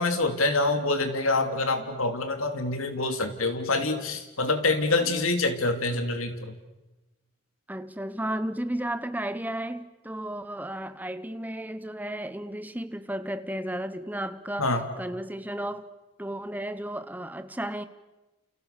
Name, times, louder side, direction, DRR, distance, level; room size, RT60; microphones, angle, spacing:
voice 1, 0.0-6.6 14.6-14.8, left 2 dB, 90° left, 3.1 m, -26 dB
voice 2, 7.7-14.7 15.0-15.9 16.2-17.8, right 1 dB, 10° right, 1.1 m, -33 dB
29.5 x 29.0 x 6.9 m
head